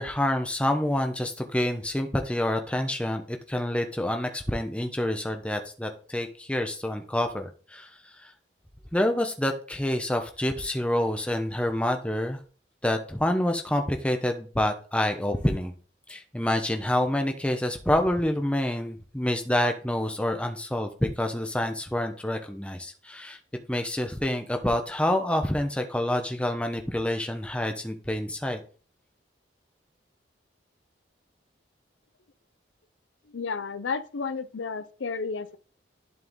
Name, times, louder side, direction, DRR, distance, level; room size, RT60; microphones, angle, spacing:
voice 1, 0.0-7.9 8.2-8.3 8.9-12.4 12.8-15.7 16.1-23.4 23.7-28.6, left 1 dB, 5° left, 0.8 m, -27 dB
voice 2, 33.3-35.6, left 5 dB, 90° left, 0.6 m, -32 dB
11.0 x 4.5 x 3.7 m
head